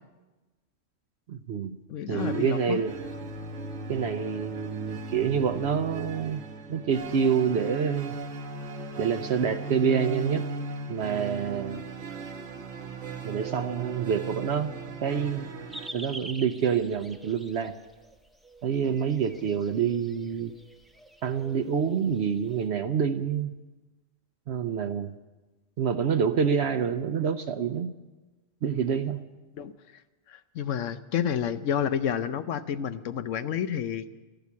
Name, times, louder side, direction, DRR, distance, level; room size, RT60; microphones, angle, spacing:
voice 1, 1.3-1.8 2.1-2.9 3.9-6.4 6.7-8.1 9.0-10.5 10.9-11.8 13.2-14.7 15.0-15.5 15.9-17.8 18.6-20.5 21.2-23.5 24.5-25.1 25.8-27.9 28.6-29.2, right 7 dB, 65° right, 9 dB, 0.9 m, -27 dB
voice 2, 1.9-2.8 29.6-29.7 30.3-34.1, left 8 dB, 75° left, 11 dB, 1.0 m, -30 dB
sound 1, 2.2-15.9, right 3 dB, 85° right, 1.5 m, -37 dB
sound 2, 15.7-22.7, right 1 dB, ahead, 0.8 m, -47 dB
13.5 x 12.0 x 8.4 m, 1.2 s
omnidirectional pair, 1.3 m